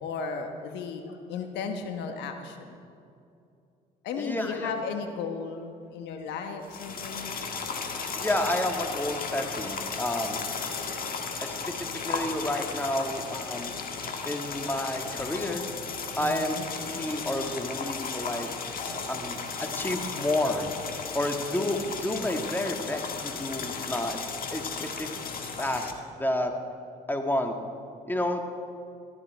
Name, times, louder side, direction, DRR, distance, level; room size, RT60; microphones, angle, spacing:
voice 1, 0.0-2.8 4.0-7.3 9.3-9.5 13.5-13.6 16.2-16.6 18.8-19.3, left 5 dB, 75° left, 5 dB, 1.2 m, -35 dB
voice 2, 4.2-4.7 8.2-10.4 11.4-13.8 14.3-15.7 16.2-18.5 19.1-20.7 21.1-24.3 24.5-25.1 25.6-26.5 27.1-27.6 28.1-28.4, left 1 dB, 10° left, 4 dB, 1.8 m, -30 dB
sound 1, 6.6-25.9, left 5 dB, 55° left, 1.6 m, -35 dB
14.0 x 12.5 x 4.6 m, 2.5 s
hypercardioid pair, 60°, 18 cm